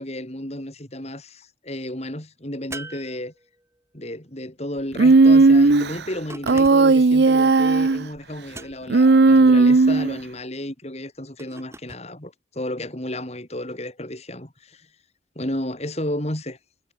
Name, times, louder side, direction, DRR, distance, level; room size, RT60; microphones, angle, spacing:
voice 1, 0.0-3.3 3.9-14.9 15.4-16.6, left 1 dB, 35° left, 4.2 m, -32 dB
sound 1, 2.7-3.8 6.3-7.1 8.5-9.1 11.4-12.1, right 2 dB, 15° right, 6.4 m, -40 dB
Human voice, 5.0-5.9 6.5-8.0 8.9-10.2, right 3 dB, 65° right, 0.6 m, -15 dB
head